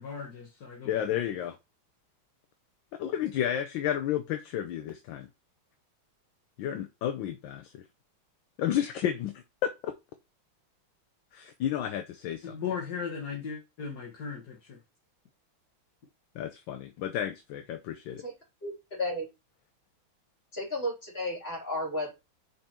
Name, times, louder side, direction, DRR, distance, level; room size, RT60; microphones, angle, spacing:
voice 1, 0.0-1.2 12.4-14.8, left 6 dB, 55° left, 1.8 m, -37 dB
voice 2, 0.9-1.6 3.0-5.3 6.6-7.8 8.6-9.9 11.3-12.6 16.3-18.2, left 10 dB, 75° left, 1.3 m, -32 dB
voice 3, 18.6-19.3 20.5-22.1, left 1 dB, 30° left, 3.6 m, -33 dB
5.4 x 4.5 x 4.3 m
omnidirectional pair, 2.3 m